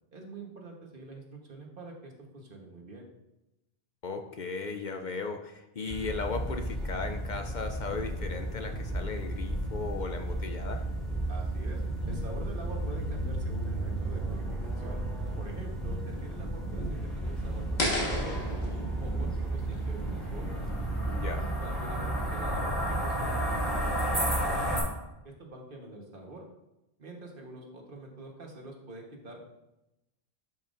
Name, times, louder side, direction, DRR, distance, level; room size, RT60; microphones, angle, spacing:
voice 1, 0.1-3.1 11.3-11.8 12.1-15.0 15.4-20.7 21.4-24.7 25.2-26.4 27.0-29.4, right 2 dB, 60° right, 1 dB, 1.4 m, -45 dB
voice 2, 4.0-10.8 21.1-21.5, left 4 dB, 55° left, 5 dB, 0.6 m, -36 dB
sound 1, 5.9-24.8, right 1 dB, ahead, 2.7 m, -32 dB
sound 2, 17.8-20.8, left 1 dB, 80° left, 1.8 m, -34 dB
11.0 x 5.8 x 2.5 m, 0.94 s
omnidirectional pair, 1.0 m